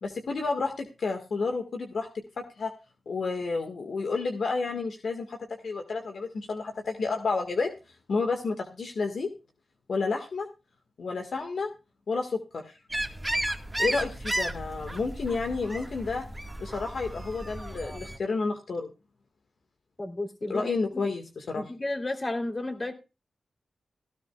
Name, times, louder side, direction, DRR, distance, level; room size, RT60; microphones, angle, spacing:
voice 1, 0.0-2.1 2.6-2.7 3.0-5.4 5.6-7.7 8.1-9.3 9.9-10.5 11.0-11.7 12.1-12.8 13.8-16.2 16.6-18.9 20.5-21.6, left 4 dB, 75° left, 4 dB, 1.7 m, -30 dB
sound 1, 12.9-18.2, right 1 dB, 15° right, 1.7 m, -33 dB
voice 2, 20.0-21.0 21.5-22.9, left 2 dB, 35° left, 4 dB, 3.3 m, -33 dB
17.5 x 13.0 x 2.4 m, 0.30 s
cardioid pair, 45°, 0 cm